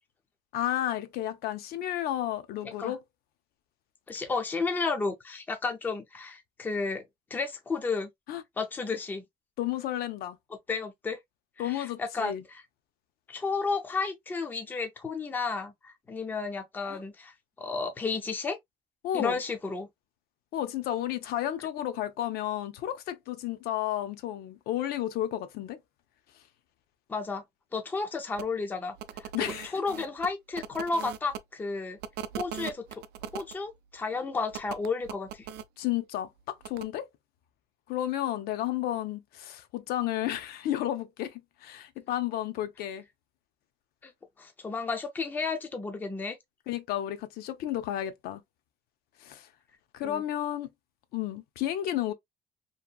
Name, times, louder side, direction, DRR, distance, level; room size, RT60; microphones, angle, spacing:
voice 1, 0.5-3.0 8.3-8.4 9.6-10.4 11.6-12.4 16.9-17.0 19.0-19.4 20.5-25.8 29.3-29.8 35.8-37.1 37.9-43.0 46.7-48.4 49.2-49.5 49.9-50.7 51.1-52.1, left 12 dB, 75° left, 0.5 m, -32 dB
voice 2, 4.1-7.0 7.3-8.1 8.6-9.2 10.7-11.2 11.6-12.6 13.3-17.3 17.6-18.6 19.1-19.9 27.1-27.4 27.7-29.3 29.7-32.0 32.4-33.0 33.3-35.5 44.0-44.1 44.4-46.4 50.0-50.2, left 4 dB, 10° left, 0.4 m, -32 dB
sound 1, 28.3-28.5 29.0-31.4 32.0-33.5 34.5-35.6 36.6-36.8, right 9 dB, 85° right, 0.4 m, -39 dB
2.7 x 2.5 x 2.2 m
cardioid pair, 175°, 16 cm